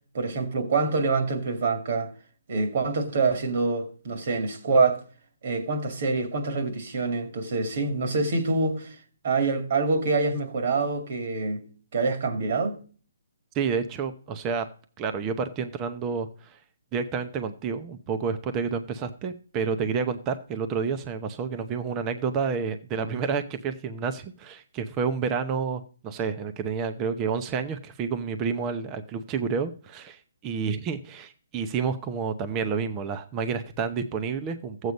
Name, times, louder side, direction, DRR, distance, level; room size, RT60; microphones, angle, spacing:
voice 1, 0.1-2.1 2.5-5.0 5.4-9.0 9.2-12.8, right 3 dB, 50° right, 2.3 m, -26 dB
voice 2, 13.5-14.7 15.0-16.6 16.9-34.9, right 5 dB, 20° right, 0.7 m, -29 dB
14.0 x 8.1 x 5.3 m
hypercardioid pair, 165°, 0 cm